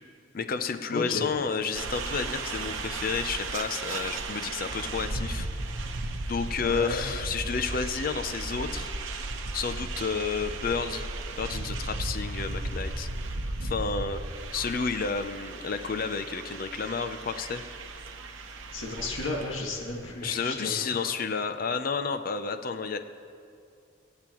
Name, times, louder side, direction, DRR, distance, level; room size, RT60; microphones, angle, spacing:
voice 1, 0.3-5.5 6.3-9.2 9.5-11.1 11.4-13.1 13.6-17.7 20.2-23.0, left 5 dB, 45° left, 9 dB, 0.5 m, -31 dB
voice 2, 0.9-1.3 6.6-7.0 18.7-21.1, left 2 dB, 80° left, -1 dB, 1.7 m, -33 dB
sound 1, 1.7-20.1, right 2 dB, 75° right, 0.9 m, -35 dB
23.5 x 8.6 x 3.0 m, 2.4 s
head